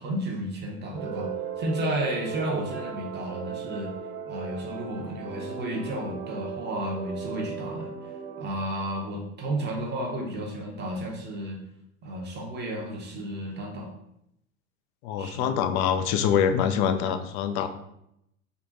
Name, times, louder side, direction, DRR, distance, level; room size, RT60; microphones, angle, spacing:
voice 1, 0.0-4.0 4.3-7.9 8.4-11.6 12.0-13.9 15.2-15.6, right 1 dB, 25° right, 0 dB, 0.7 m, -32 dB
sound 1, 0.9-8.5, right 6 dB, 85° right, 0.7 m, -36 dB
voice 2, 15.0-17.7, left 8 dB, 55° left, 9 dB, 0.5 m, -25 dB
3.7 x 2.2 x 3.7 m, 0.79 s
hypercardioid pair, 105°, 40 cm